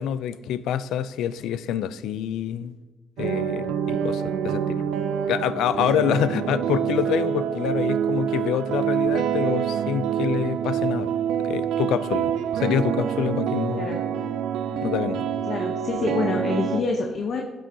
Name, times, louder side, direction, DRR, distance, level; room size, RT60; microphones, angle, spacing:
voice 1, 0.0-2.7 3.2-4.8 5.3-11.1 11.4-13.9 14.8-15.3, left 9 dB, 85° left, 15 dB, 0.3 m, -26 dB
sound 1, 3.2-16.8, right 8 dB, 85° right, 0.4 m, -26 dB
voice 2, 15.4-17.4, left 3 dB, 55° left, 2 dB, 0.8 m, -26 dB
11.0 x 6.2 x 2.7 m, 1.3 s
cardioid pair, 90°, 0 cm